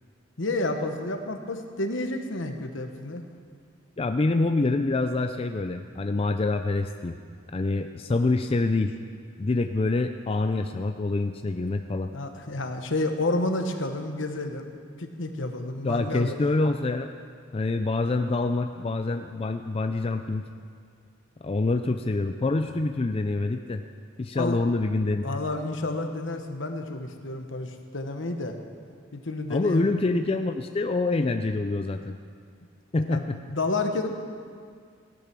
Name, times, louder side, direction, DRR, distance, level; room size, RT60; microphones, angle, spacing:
voice 1, 0.4-3.2 12.1-14.7 15.0-16.3 24.3-24.6 25.2-28.6 29.1-29.9 33.1-34.1, left 2 dB, 70° left, 5 dB, 1.2 m, -30 dB
voice 2, 4.0-7.2 7.5-8.9 9.4-12.1 15.8-17.1 17.5-20.5 21.4-23.8 24.2-25.3 29.5-32.2 32.9-33.4, left 2 dB, 30° left, 7 dB, 0.4 m, -26 dB
16.5 x 10.5 x 6.1 m, 2.1 s
head